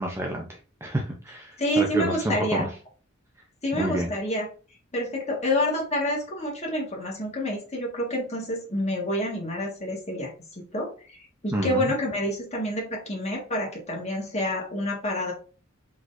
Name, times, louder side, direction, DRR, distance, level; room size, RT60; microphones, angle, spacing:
voice 1, 0.0-2.7 3.7-4.1 11.5-11.9, right 1 dB, 10° right, 1 dB, 0.6 m, -29 dB
voice 2, 1.6-2.7 3.6-4.5 4.9-11.2 11.4-15.3, left 1 dB, 35° left, -1 dB, 1.6 m, -28 dB
4.9 x 3.9 x 2.6 m, 0.37 s
head